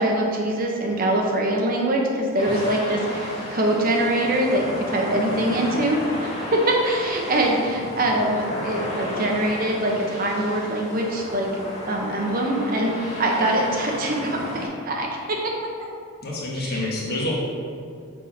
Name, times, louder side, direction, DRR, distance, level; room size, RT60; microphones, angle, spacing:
voice 1, 0.0-11.5 11.9-15.4 16.6-16.9, right 1 dB, 40° right, 0 dB, 0.8 m, -23 dB
sound 1, 2.4-14.7, left 1 dB, 30° left, 1.6 m, -33 dB
voice 2, 16.2-17.4, left 1 dB, 45° left, -4 dB, 1.4 m, -28 dB
6.9 x 3.7 x 5.0 m, 2.3 s
head